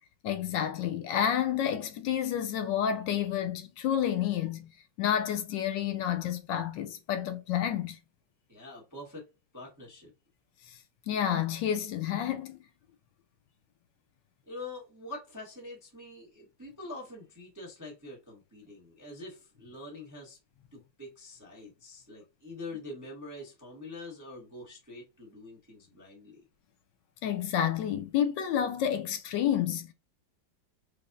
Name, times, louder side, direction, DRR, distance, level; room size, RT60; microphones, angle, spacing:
voice 1, 0.2-4.7 5.0-8.0 10.7-10.8 11.1-12.6 27.2-29.9, left 9 dB, 75° left, 1.2 m, -30 dB
voice 2, 8.5-9.3 9.5-10.1 14.5-20.4 20.7-26.4, left 2 dB, 15° right, 0.6 m, -45 dB
5.0 x 2.1 x 2.5 m
omnidirectional pair, 2.1 m